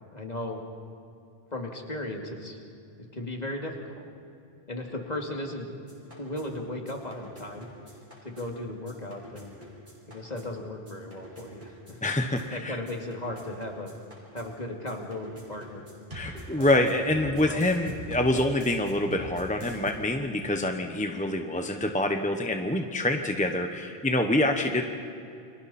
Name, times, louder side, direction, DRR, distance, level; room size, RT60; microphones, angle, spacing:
voice 1, 0.1-0.6 1.5-2.6 3.1-4.0 4.7-7.7 8.2-9.5 10.1-12.0 12.5-13.9 14.3-15.8 16.5-16.8 17.2-17.6, left 1 dB, 40° left, 1 dB, 2.6 m, -36 dB
sound 1, 5.9-19.9, right 1 dB, 50° right, 5.4 m, -46 dB
voice 2, 12.0-12.8 16.1-24.8, left 1 dB, 10° left, 5 dB, 1.0 m, -26 dB
30.0 x 24.5 x 4.3 m, 2.6 s
omnidirectional pair, 1.1 m